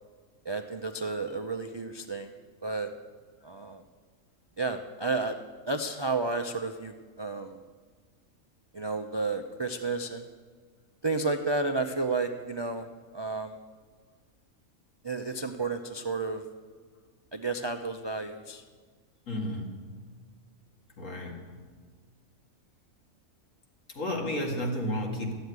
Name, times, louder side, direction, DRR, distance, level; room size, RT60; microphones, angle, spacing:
voice 1, 0.4-2.3 2.6-2.9 3.4-3.8 4.6-5.4 5.7-7.6 8.7-10.3 11.0-12.9 13.1-13.6 15.0-16.4 17.3-18.6, right 3 dB, 45° right, 6 dB, 0.3 m, -31 dB
voice 2, 19.3-19.9 21.0-21.7 23.9-25.3, left 1 dB, 65° left, 1 dB, 2.5 m, -32 dB
13.0 x 7.8 x 9.4 m, 1.5 s
omnidirectional pair, 1.4 m